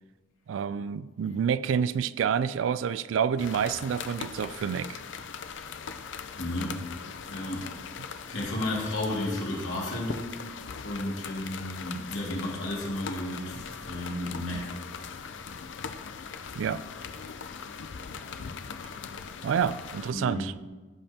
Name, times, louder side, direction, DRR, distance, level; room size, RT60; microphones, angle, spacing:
voice 1, 0.5-5.0 16.5-16.8 19.4-20.5, right 7 dB, 90° right, 15 dB, 0.3 m, -28 dB
sound 1, 3.4-20.1, left 6 dB, 70° left, 0.5 m, -40 dB
voice 2, 6.4-6.8 7.3-7.7 8.0-10.4 10.8-14.8 15.1-15.5 20.1-20.4, left 1 dB, 90° left, -3 dB, 2.3 m, -33 dB
15.5 x 5.4 x 2.9 m, 1.3 s
head